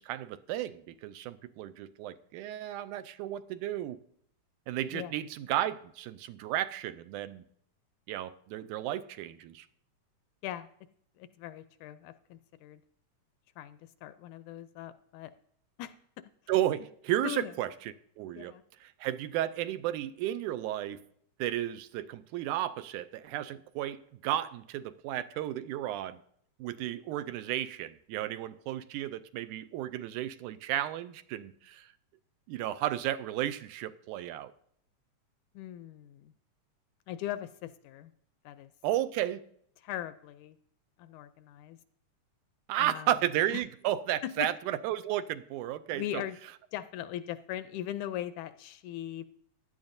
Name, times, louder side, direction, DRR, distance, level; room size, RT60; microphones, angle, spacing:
voice 1, 0.0-4.0 4.7-7.4 8.1-9.7 16.5-17.7 18.2-18.5 18.8-21.0 21.4-26.2 26.6-31.9 32.5-34.5 38.8-39.5 42.7-46.2, right 13 dB, 80° right, 13 dB, 2.0 m, -33 dB
voice 2, 11.2-12.8 13.6-15.3 15.8-16.2 17.2-17.5 18.3-18.6 35.6-36.3 37.1-38.1 38.5-38.7 39.8-40.6 41.0-41.8 42.8-43.1 43.5-43.6 44.2-44.5 45.9-46.4 46.7-49.3, left 12 dB, 80° left, 12 dB, 1.8 m, -40 dB
16.0 x 11.0 x 2.6 m, 0.65 s
omnidirectional pair, 3.7 m